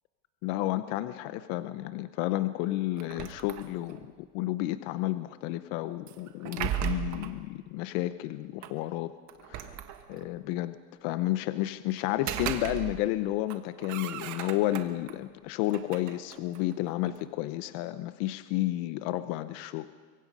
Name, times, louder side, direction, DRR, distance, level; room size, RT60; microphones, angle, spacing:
voice 1, 0.4-9.1 9.5-9.8 10.1-10.8 11.0-19.9, left 15 dB, 40° left, 12 dB, 0.7 m, -31 dB
sound 1, 3.0-4.1 6.1-7.4 8.6-8.7 9.3-10.4 12.0-13.2 13.5-15.1 15.6-17.2, right 10 dB, 35° right, 1.5 m, -37 dB
24.5 x 23.5 x 5.4 m, 1.5 s
supercardioid pair, 150°, 48 cm